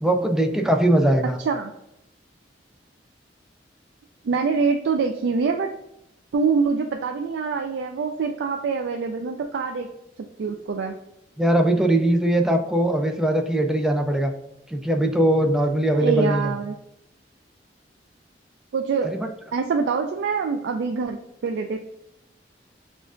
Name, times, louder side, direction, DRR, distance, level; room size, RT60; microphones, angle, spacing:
voice 1, 0.0-1.4 11.4-14.3 14.7-16.5 19.0-19.3, right 1 dB, 5° right, 4 dB, 0.4 m, -20 dB
voice 2, 4.2-5.7 6.3-9.9 10.4-11.0 15.9-16.8 18.7-19.3 19.5-21.8, right 5 dB, 85° right, 4 dB, 0.3 m, -25 dB
6.1 x 2.5 x 2.4 m, 0.85 s
head